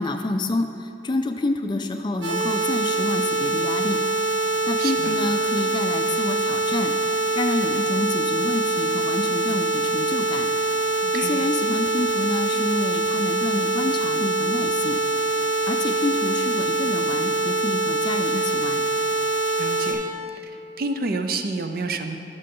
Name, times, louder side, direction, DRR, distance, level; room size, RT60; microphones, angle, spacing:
voice 1, 0.0-4.0 4.7-6.9 7.4-10.5 11.1-15.0 15.7-18.8, left 2 dB, 25° left, 6 dB, 0.4 m, -28 dB
sound 1, 2.2-19.9, right 2 dB, 75° right, 1.7 m, -24 dB
voice 2, 4.8-5.2 11.0-11.4 19.6-20.0 20.8-22.2, right 3 dB, 50° right, 7 dB, 0.5 m, -28 dB
12.0 x 6.7 x 3.7 m, 2.8 s
head